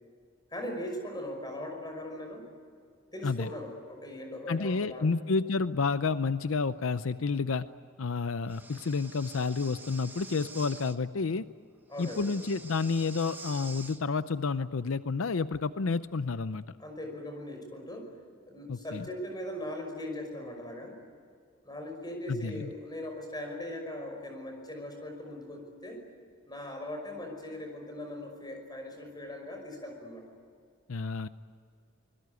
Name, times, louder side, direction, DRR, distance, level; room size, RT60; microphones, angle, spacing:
voice 1, 0.5-2.5 3.1-5.1 11.9-12.3 16.8-18.1 18.5-21.0 21.6-26.0 26.5-30.2, left 1 dB, 20° left, 3 dB, 5.6 m, -39 dB
voice 2, 4.5-7.6 8.0-11.4 12.0-16.6 18.7-19.0 22.3-22.7 30.9-31.3, left 4 dB, 75° left, 13 dB, 0.6 m, -30 dB
Breathing, 8.5-11.0 11.9-14.0, right 3 dB, 10° right, 1.1 m, -47 dB
25.0 x 22.0 x 9.6 m, 2.3 s
head